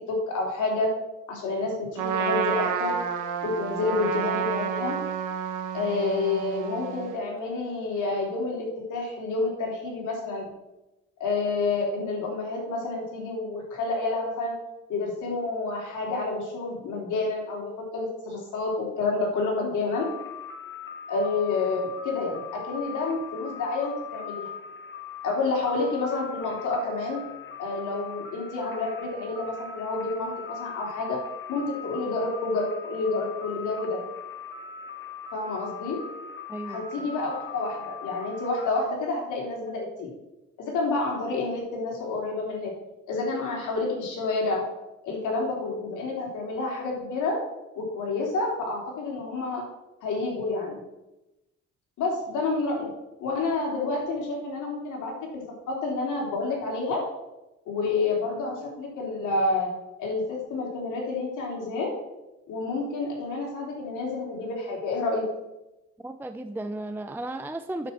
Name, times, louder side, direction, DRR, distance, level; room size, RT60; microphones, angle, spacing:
voice 1, 0.1-0.9 1.3-3.0 3.4-5.0 5.7-10.5 11.2-14.6 14.9-20.1 21.1-24.5 25.2-27.2 27.6-31.2 31.5-34.0 35.3-36.0 36.6-40.1 40.6-42.7 43.1-44.7 45.0-47.4 47.8-49.6 50.0-50.8 52.0-52.9 53.2-57.0 57.7-59.7 60.0-61.9 62.5-65.2, left 3 dB, 80° left, -2 dB, 3.2 m, -29 dB
Trumpet, 2.0-7.2, right 7 dB, 85° right, 1.2 m, -30 dB
sound 1, 19.9-38.7, left 7 dB, 40° left, 1.2 m, -40 dB
voice 2, 36.5-37.1 66.0-67.9, right 1 dB, 5° right, 10 dB, 0.4 m, -35 dB
9.1 x 7.4 x 4.3 m, 0.98 s
cardioid pair, 90°, 30 cm